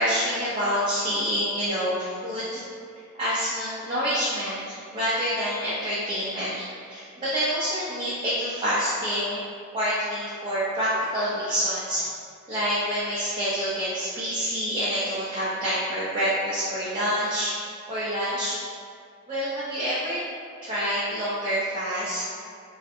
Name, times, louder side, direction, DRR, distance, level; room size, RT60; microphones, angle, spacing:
voice 1, 0.0-2.6 3.2-9.4 9.7-12.0 12.5-17.5 17.9-18.6 19.3-20.2 20.6-22.2, equal, 25° right, -10 dB, 0.4 m, -27 dB
2.4 x 2.4 x 2.5 m, 2.2 s
head